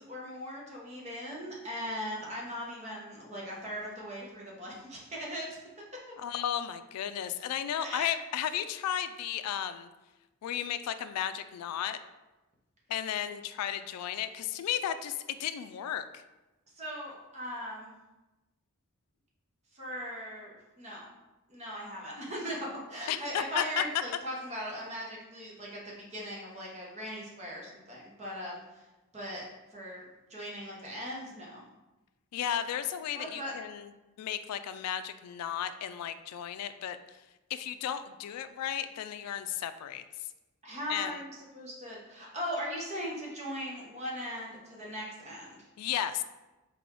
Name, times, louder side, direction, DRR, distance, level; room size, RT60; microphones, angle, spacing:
voice 1, 0.0-5.5 7.8-8.1 16.7-17.9 19.7-21.1 21.5-28.8 29.1-29.4 29.7-31.6 33.1-33.5 40.6-45.7, equal, 30° right, -3 dB, 1.1 m, -39 dB
voice 2, 6.2-9.9 10.4-12.0 12.9-16.2 23.1-23.8 32.3-33.9 34.2-37.0 37.5-40.0 40.9-41.2 45.8-46.2, left 10 dB, 85° left, 14 dB, 0.3 m, -34 dB
4.2 x 3.4 x 3.7 m, 1.1 s
head